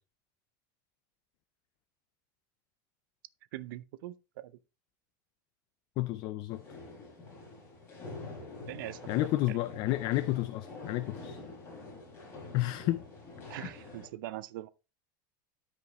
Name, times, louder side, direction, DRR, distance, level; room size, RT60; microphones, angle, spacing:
voice 1, 3.5-4.5 8.7-9.0 9.5-9.6 13.5-14.7, right 15 dB, 85° right, 0.5 m, -42 dB
voice 2, 6.0-6.6 9.1-11.4 12.5-13.0 13.5-13.7, left 16 dB, 45° left, 0.4 m, -31 dB
sound 1, 6.5-14.1, left 3 dB, 25° left, 5.3 m, -46 dB
12.5 x 5.1 x 3.0 m
supercardioid pair, 155°, 11 cm